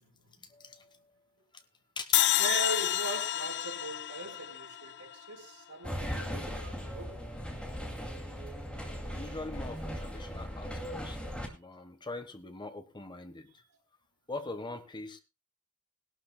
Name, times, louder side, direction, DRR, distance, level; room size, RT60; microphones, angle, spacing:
voice 1, 0.5-0.9 2.0-2.2 9.1-13.5 14.3-15.2, left 2 dB, 20° left, 1.1 m, -42 dB
sound 1, 2.1-5.3, left 12 dB, 50° left, 0.5 m, -29 dB
voice 2, 2.4-7.1, right 2 dB, 90° right, 4.1 m, -40 dB
sound 2, 5.8-11.5, equal, 5° left, 2.4 m, -38 dB
20.0 x 12.0 x 2.2 m
head